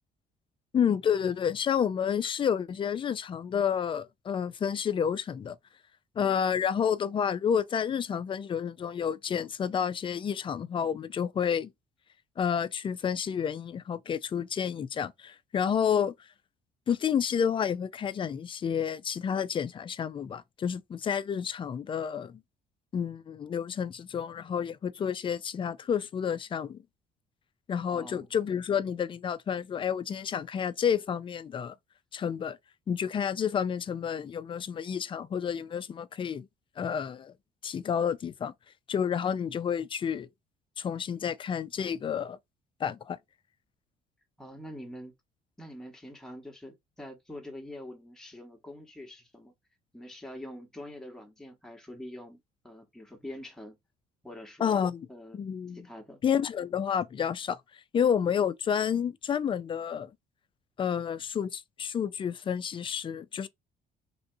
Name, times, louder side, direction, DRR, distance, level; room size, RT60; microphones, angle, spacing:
voice 1, 0.7-5.6 6.2-11.7 12.4-16.1 16.9-22.4 22.9-26.8 27.7-31.8 32.1-32.6 32.9-36.5 36.8-37.3 37.6-38.5 38.9-40.3 40.8-42.4 42.8-43.2 54.6-55.0 55.3-55.9 56.2-57.6 57.9-60.1 60.8-63.5, left 8 dB, 30° left, 0.4 m, -30 dB
voice 2, 27.9-28.3 44.4-45.1 45.6-49.5 49.9-53.8 54.2-54.8 55.1-55.4 55.7-56.2, left 1 dB, 5° left, 0.9 m, -45 dB
3.3 x 2.7 x 2.6 m
cardioid pair, 110°, 17 cm